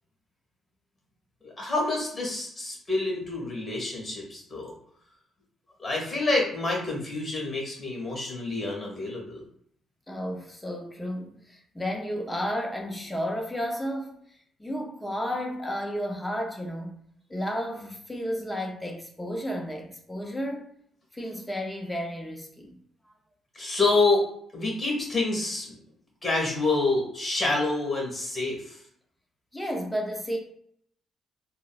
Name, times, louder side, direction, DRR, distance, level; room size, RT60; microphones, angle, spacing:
voice 1, 1.4-4.7 5.8-9.4 23.5-24.2 24.5-25.8 26.2-28.8, left 2 dB, 30° left, 1.4 m, -27 dB
voice 2, 10.1-14.2 14.6-17.0 17.3-20.7 21.1-22.8 29.5-30.4, equal, 10° left, 0.6 m, -32 dB
3.8 x 2.0 x 2.3 m
cardioid pair, 90°, 0 cm